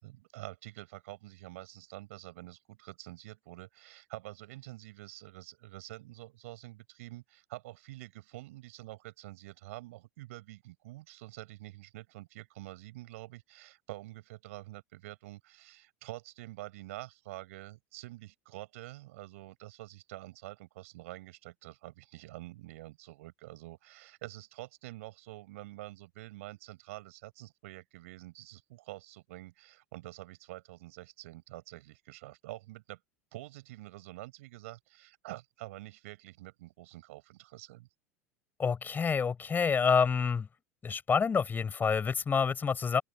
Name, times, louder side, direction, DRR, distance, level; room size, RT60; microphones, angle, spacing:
voice 1, 0.0-33.0 33.3-37.9, right 18 dB, 60° right, 5.8 m, -47 dB
voice 2, 38.6-40.5 40.8-43.0, left 6 dB, 20° left, 5.1 m, -28 dB
figure-of-eight pair, 75°, 8 cm